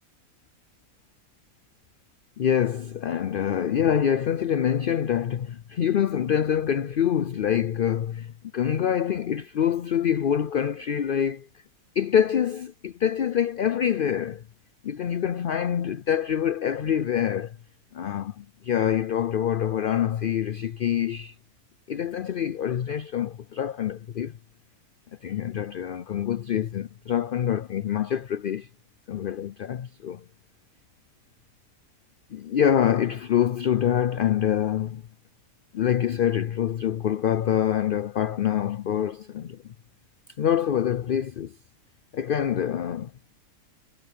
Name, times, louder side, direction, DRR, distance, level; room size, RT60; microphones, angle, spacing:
voice 1, 2.4-11.5 12.0-14.4 14.8-17.6 17.9-21.3 21.9-24.3 25.2-28.7 29.1-30.2 32.3-35.0 35.7-39.6 40.4-41.6 42.1-43.1, left 9 dB, 60° left, 0.5 m, -25 dB
omnidirectional pair, 1.5 m